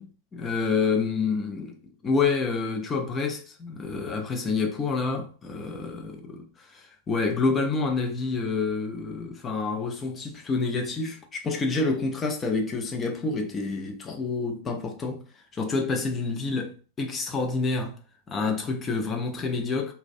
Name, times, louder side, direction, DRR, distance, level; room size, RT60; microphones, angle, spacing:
voice 1, 0.0-1.7 2.0-6.5 6.7-15.3 15.5-18.0 18.3-19.9, left 4 dB, 20° left, 0.5 m, -28 dB
2.3 x 2.1 x 2.5 m
figure-of-eight pair, 90°, 0 cm